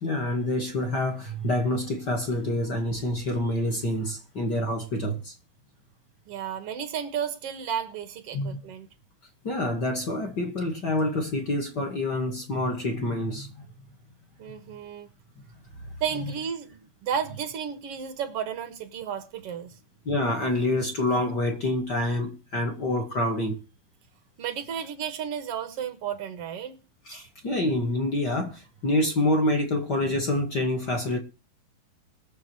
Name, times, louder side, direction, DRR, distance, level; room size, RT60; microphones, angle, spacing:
voice 1, 0.0-5.3 8.3-8.6 9.4-13.7 15.4-15.5 16.2-16.3 20.1-23.6 27.1-31.2, left 1 dB, 35° left, 1.8 m, -27 dB
voice 2, 6.3-8.9 14.4-15.1 16.0-19.8 24.4-26.8, right 8 dB, 70° right, 1.4 m, -33 dB
22.0 x 7.5 x 4.6 m
omnidirectional pair, 4.9 m